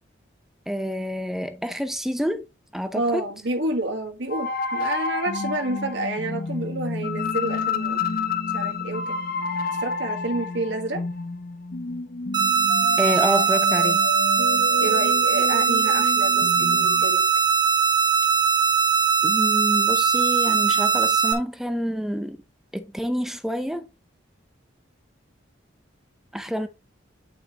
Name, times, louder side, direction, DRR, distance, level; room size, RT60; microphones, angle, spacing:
voice 1, 0.7-2.4 2.7-3.2 13.0-14.0 19.2-22.4 22.7-23.9 26.3-26.7, equal, ahead, 0.7 m, -27 dB
voice 2, 2.9-8.1 8.5-9.1 9.8-11.0 14.8-17.2, right 2 dB, 65° right, 1.6 m, -29 dB
sound 1, 4.3-17.0, left 4 dB, 45° left, 0.5 m, -29 dB
sound 2, 12.3-21.3, right 7 dB, 20° right, 1.0 m, -20 dB
9.2 x 5.6 x 3.0 m
head